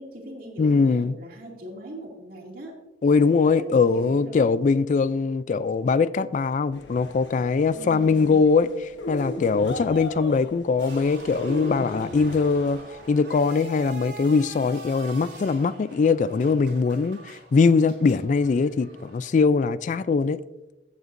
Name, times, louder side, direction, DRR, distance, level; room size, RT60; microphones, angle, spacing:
voice 1, 0.0-2.7 3.5-4.7 7.7-8.5, right 1 dB, 55° right, 2.3 m, -40 dB
voice 2, 0.6-1.1 3.0-8.7 9.1-12.8 13.1-20.4, left 4 dB, 45° left, 0.3 m, -21 dB
sound 1, 6.7-13.1, left 1 dB, 90° left, 1.2 m, -37 dB
sound 2, 10.8-19.3, right 3 dB, 90° right, 2.8 m, -44 dB
15.0 x 8.1 x 2.6 m
head